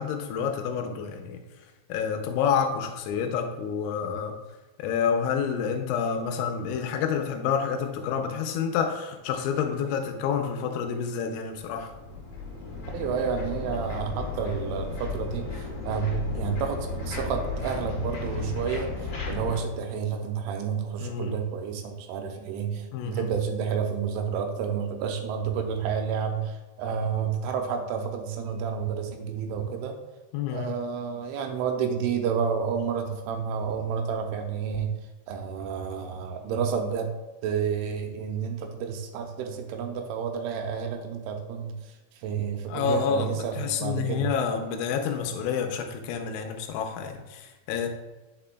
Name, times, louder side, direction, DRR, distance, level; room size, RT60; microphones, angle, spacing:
voice 1, 0.0-1.5 1.9-4.4 4.8-12.2 21.0-21.4 22.9-23.3 30.3-30.8 42.7-47.9, left 7 dB, 85° left, 4 dB, 2.9 m, -28 dB
sound 1, 11.5-19.6, left 4 dB, 50° left, 2.2 m, -34 dB
voice 2, 12.9-18.9 19.3-30.0 30.5-34.9 35.3-37.2 37.4-41.8 42.2-44.3, right 7 dB, 85° right, 4 dB, 3.0 m, -30 dB
8.5 x 5.9 x 2.2 m, 1.1 s
omnidirectional pair, 5.6 m